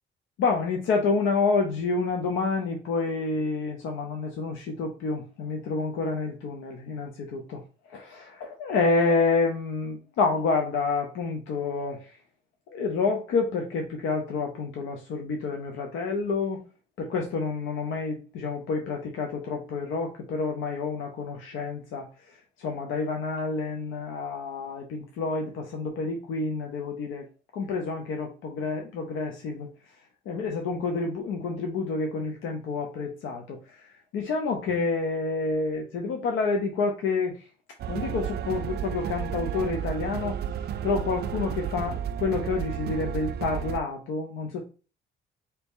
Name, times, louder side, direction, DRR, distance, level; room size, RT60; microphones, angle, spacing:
voice 1, 0.4-12.2 12.7-16.6 17.0-27.3 27.5-29.9 30.3-37.5 37.9-44.6, left 4 dB, 90° left, 3 dB, 0.7 m, -29 dB
sound 1, 37.8-43.8, right 9 dB, 55° right, 0.4 m, -32 dB
4.0 x 2.9 x 3.6 m, 0.35 s
cardioid pair, 90°, 20 cm